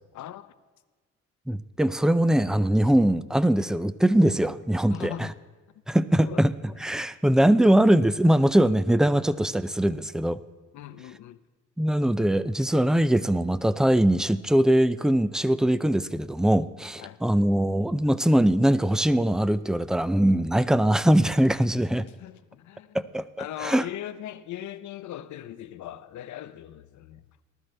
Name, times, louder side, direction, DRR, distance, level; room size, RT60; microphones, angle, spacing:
voice 1, 0.1-0.5 4.9-5.4 6.2-6.5 10.7-11.4 17.0-17.2 22.0-23.0 23.4-27.2, left 12 dB, 70° left, 0.7 m, -39 dB
voice 2, 1.5-5.3 5.9-6.5 6.8-10.4 11.8-22.0 22.9-23.2 23.6-23.8, right 1 dB, ahead, 0.4 m, -22 dB
19.0 x 12.5 x 3.3 m
cardioid pair, 90°, 30 cm